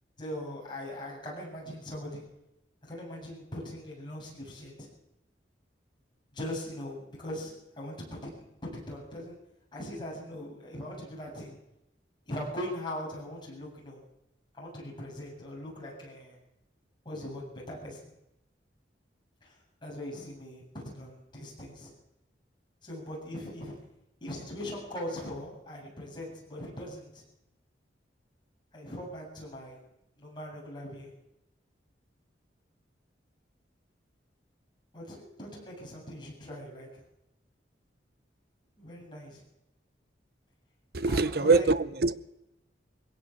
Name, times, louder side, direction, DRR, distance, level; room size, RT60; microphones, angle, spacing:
voice 1, 0.2-2.3 2.8-4.9 6.3-8.3 8.6-9.4 9.7-11.6 12.3-14.0 14.6-16.4 17.0-18.0 19.4-19.5 19.8-21.9 22.8-23.8 24.2-27.2 28.7-29.8 30.2-31.1 34.9-37.0 38.8-39.4 41.0-41.7, left 1 dB, 25° left, 7.9 m, -40 dB
voice 2, 40.9-42.3, right 3 dB, 60° right, 0.8 m, -24 dB
21.0 x 17.0 x 7.3 m
head